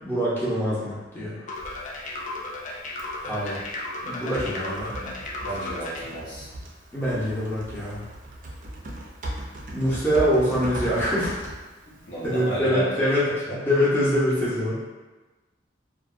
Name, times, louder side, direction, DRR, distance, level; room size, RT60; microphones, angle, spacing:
voice 1, 0.0-1.4 3.2-3.6 4.0-4.9 6.9-8.0 9.7-11.4 12.2-13.3 13.6-14.8, equal, 10° left, -10 dB, 0.6 m, -24 dB
sound 1, 1.5-6.1, left 2 dB, 40° left, 0.3 m, -34 dB
Typing, 1.5-12.6, right 1 dB, 45° right, 0.4 m, -39 dB
voice 2, 5.4-6.5 12.1-13.0 13.3-13.6, right 1 dB, 75° left, -7 dB, 0.8 m, -32 dB
2.4 x 2.1 x 2.4 m, 1.2 s
head